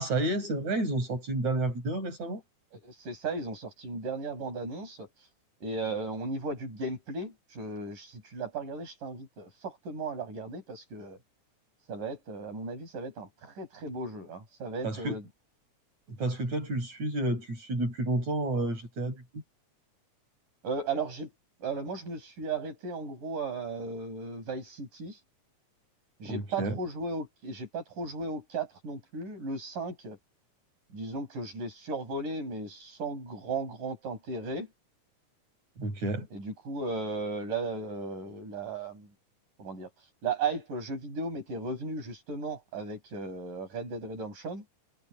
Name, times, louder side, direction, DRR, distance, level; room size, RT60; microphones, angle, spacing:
voice 1, 0.0-2.4 14.8-15.2 16.1-19.4 26.2-26.8 35.8-36.3, right 2 dB, 60° right, 8.3 m, -30 dB
voice 2, 2.7-5.3 5.6-11.2 11.9-15.2 20.6-21.3 21.6-25.2 26.2-30.2 30.9-34.7 36.3-39.1 39.6-44.6, right 3 dB, 90° right, 9.2 m, -36 dB
omnidirectional pair, 3.6 m